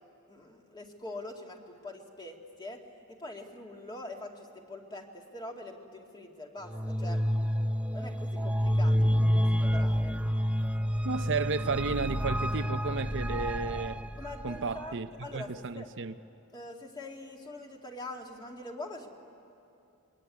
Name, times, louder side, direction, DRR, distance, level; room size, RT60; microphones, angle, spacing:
voice 1, 0.3-2.8 3.1-7.2 7.9-10.2 14.2-15.9 16.5-19.1, left 2 dB, 20° left, 2.1 m, -44 dB
sound 1, 6.6-14.9, equal, 5° right, 0.7 m, -29 dB
voice 2, 11.0-14.0 14.4-16.1, right 4 dB, 60° right, 0.7 m, -33 dB
25.5 x 22.5 x 9.6 m
head